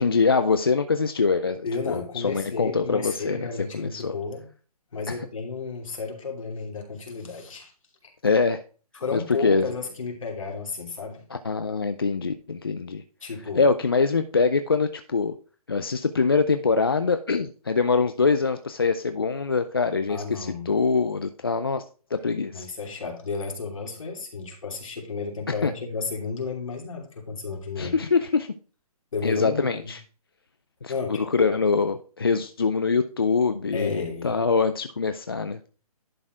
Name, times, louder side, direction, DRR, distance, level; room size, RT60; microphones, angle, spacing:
voice 1, 0.0-3.5 3.7-4.2 5.1-5.3 8.2-8.6 9.1-9.7 11.3-13.0 13.6-15.3 15.7-21.8 22.1-22.7 25.5-25.7 27.8-28.5 29.2-30.0 30.8-35.6, left 4 dB, 40° left, 9 dB, 0.4 m, -24 dB
voice 2, 1.6-4.5 4.9-7.7 8.9-11.2 13.2-13.7 20.1-20.7 22.5-28.0 29.1-29.9 30.9-31.5 33.7-34.5, left 4 dB, 60° left, 0 dB, 2.9 m, -32 dB
11.0 x 4.3 x 4.4 m, 0.38 s
hypercardioid pair, 180°, 19 cm